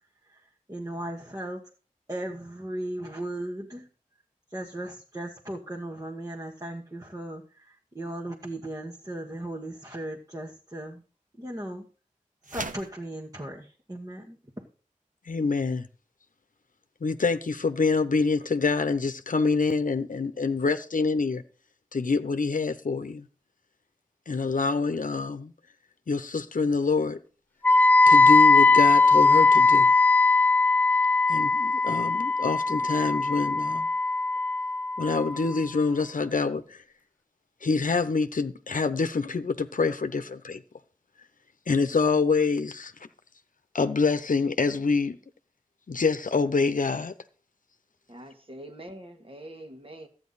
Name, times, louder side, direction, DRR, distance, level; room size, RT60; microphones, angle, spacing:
voice 1, 0.3-1.6 2.1-3.9 4.5-11.0 11.4-11.8 12.5-14.4, right 1 dB, 25° right, 1.5 m, -37 dB
sound 1, 12.4-13.0, right 4 dB, 70° right, 0.8 m, -36 dB
voice 2, 15.3-15.9 17.0-21.4 21.9-23.3 24.3-25.5 26.1-27.2 28.1-29.9 31.3-33.9 35.0-36.8 37.6-40.6 41.7-42.9 43.7-45.2 45.9-47.1, left 4 dB, 75° left, 0.8 m, -26 dB
Wind instrument woodwind instrument, 27.6-35.6, left 3 dB, 15° left, 0.5 m, -20 dB
voice 3, 48.1-50.1, right 1 dB, 40° right, 1.8 m, -44 dB
13.0 x 9.2 x 4.1 m
wide cardioid pair, 60°, 14 cm